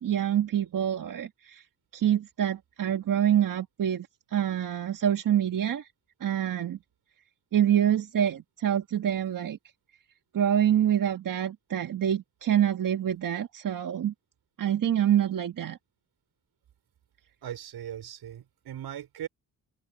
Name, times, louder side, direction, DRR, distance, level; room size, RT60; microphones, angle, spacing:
voice 1, 0.0-1.6 1.9-5.9 6.2-6.8 7.5-9.6 10.3-14.1 14.6-15.8, right 10 dB, 60° right, 1.5 m, -26 dB
voice 2, 17.4-19.3, right 10 dB, 85° right, 5.4 m, -39 dB
cardioid pair, 120°, 37 cm